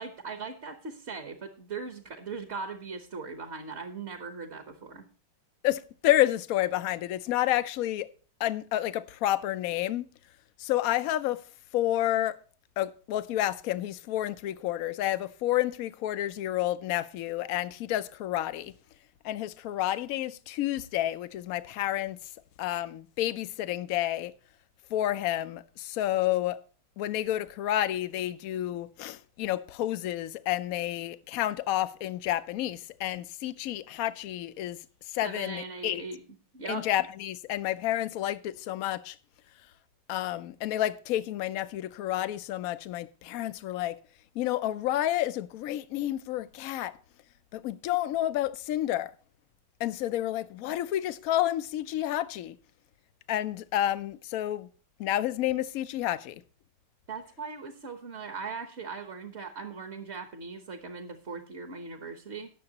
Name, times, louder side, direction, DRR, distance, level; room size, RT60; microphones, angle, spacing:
voice 1, 0.0-5.1 35.2-36.2 36.5-36.9 57.1-62.5, right 4 dB, 40° right, 1.2 m, -39 dB
voice 2, 5.6-8.1 8.4-10.0 10.6-11.4 11.7-12.4 12.8-18.7 19.2-22.2 22.6-24.3 24.9-26.6 27.0-34.8 35.1-36.0 36.7-39.2 40.1-44.0 44.3-47.0 47.5-49.1 49.8-52.6 53.3-54.7 55.0-56.4, left 13 dB, 70° left, 0.9 m, -30 dB
19.5 x 6.9 x 2.9 m
omnidirectional pair, 1.9 m